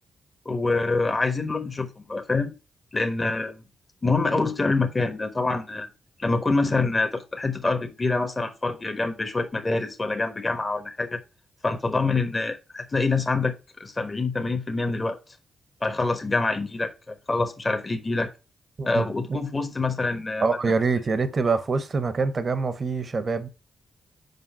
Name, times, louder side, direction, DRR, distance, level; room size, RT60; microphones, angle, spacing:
voice 1, 0.4-2.5 2.9-3.6 4.0-5.9 6.2-11.2 11.6-15.2 15.8-18.3 18.8-20.5, left 3 dB, 35° left, 1.3 m, -26 dB
voice 2, 18.8-19.4 20.4-23.5, right 4 dB, 50° right, 1.1 m, -25 dB
5.5 x 4.9 x 5.7 m
hypercardioid pair, 40°, 0 cm